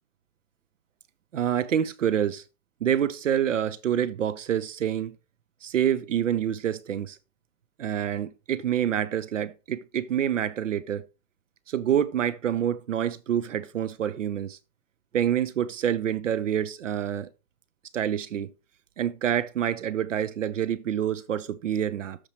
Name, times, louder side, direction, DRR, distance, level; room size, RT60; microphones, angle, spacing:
voice 1, 1.3-2.4 2.8-5.1 5.6-7.2 7.8-11.0 11.7-14.6 15.1-17.3 17.9-18.5 19.0-22.2, right 9 dB, 55° right, 0.8 m, -27 dB
13.5 x 4.7 x 3.1 m
hypercardioid pair, 150°, 46 cm